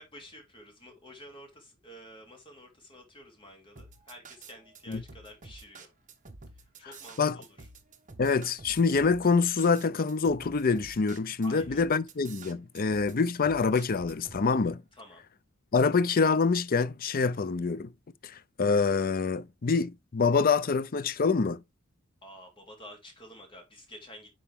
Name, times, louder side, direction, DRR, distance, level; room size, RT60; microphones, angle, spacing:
voice 1, 0.0-5.9 6.5-7.7 11.4-11.8 14.9-15.2 22.2-24.3, equal, 25° left, 3.1 m, -50 dB
sound 1, 3.8-14.4, right 3 dB, 35° right, 1.3 m, -49 dB
voice 2, 8.2-14.8 15.7-17.9 18.2-21.6, left 4 dB, 40° left, 0.5 m, -26 dB
10.0 x 4.6 x 3.6 m
head